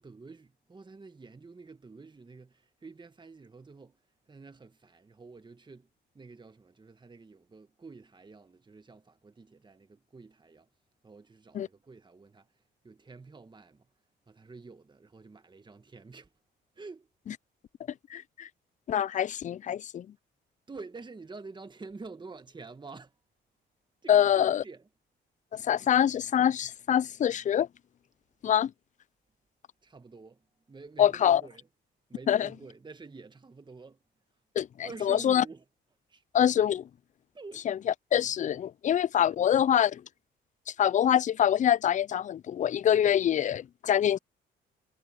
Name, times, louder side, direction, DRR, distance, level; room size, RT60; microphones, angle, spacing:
voice 1, 0.0-4.0 4.3-5.9 6.1-10.7 11.0-12.5 12.8-13.9 14.3-16.3 16.7-17.1 20.7-23.1 24.0-24.8 25.8-25.9 29.8-30.4 30.7-31.7 32.1-34.0 34.8-35.6 36.1-36.2 37.3-37.7, right 4 dB, 25° right, 1.6 m, -48 dB
voice 2, 18.1-18.5 18.9-20.1 24.1-24.6 25.5-27.7 28.4-28.7 31.0-31.4 32.3-32.5 34.6-35.4 36.3-36.9 37.6-40.0 40.8-44.2, left 10 dB, 40° left, 0.4 m, -25 dB
cardioid pair, 90°, 20 cm